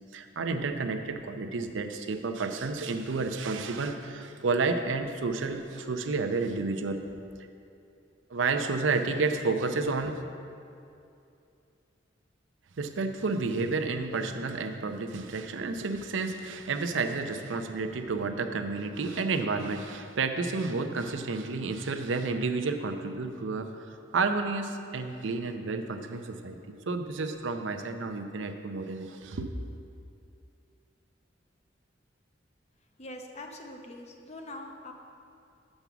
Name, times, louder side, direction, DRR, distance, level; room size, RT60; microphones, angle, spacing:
voice 1, 0.1-7.1 8.3-10.2 12.8-29.5, right 4 dB, 85° right, 7 dB, 0.6 m, -31 dB
voice 2, 33.0-34.9, left 1 dB, 35° left, 3 dB, 0.7 m, -43 dB
6.0 x 5.3 x 7.0 m, 2.6 s
head